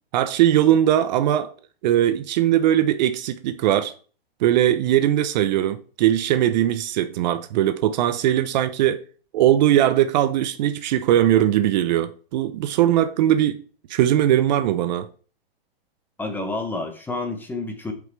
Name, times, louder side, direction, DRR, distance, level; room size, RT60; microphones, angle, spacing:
voice 1, 0.1-1.5 1.8-3.9 4.4-9.0 9.3-13.6 13.9-15.1, right 12 dB, 45° right, 0.6 m, -20 dB
voice 2, 16.2-17.9, left 2 dB, 5° left, 0.9 m, -29 dB
7.7 x 5.1 x 3.3 m
hypercardioid pair, 140°, 30 cm